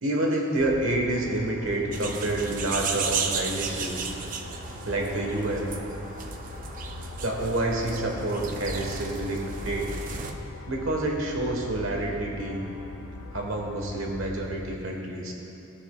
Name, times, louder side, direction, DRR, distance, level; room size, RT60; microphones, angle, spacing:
voice 1, 0.0-4.1 4.8-5.7 7.2-10.0 10.7-12.6 13.3-15.3, right 1 dB, 75° right, 0 dB, 1.2 m, -28 dB
sound 1, 0.6-14.8, left 3 dB, 80° left, 0.5 m, -41 dB
sound 2, 1.9-10.3, right 5 dB, 40° right, 0.4 m, -34 dB
15.0 x 6.6 x 2.3 m, 2.8 s
head